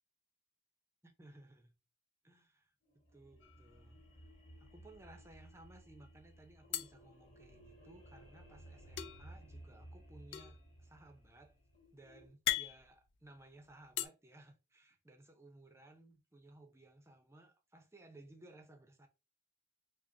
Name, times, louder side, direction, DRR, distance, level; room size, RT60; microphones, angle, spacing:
voice 1, 1.0-1.7 2.2-2.7 3.1-4.0 4.6-11.6 11.9-19.1, right 2 dB, 15° right, 0.6 m, -59 dB
sound 1, 2.8-12.3, right 1 dB, 30° left, 2.1 m, -57 dB
sound 2, 3.4-4.3 4.6-4.8 5.1-5.8 6.7-8.0 9.0-14.1, left 12 dB, 70° left, 0.4 m, -42 dB
4.9 x 2.1 x 2.6 m
head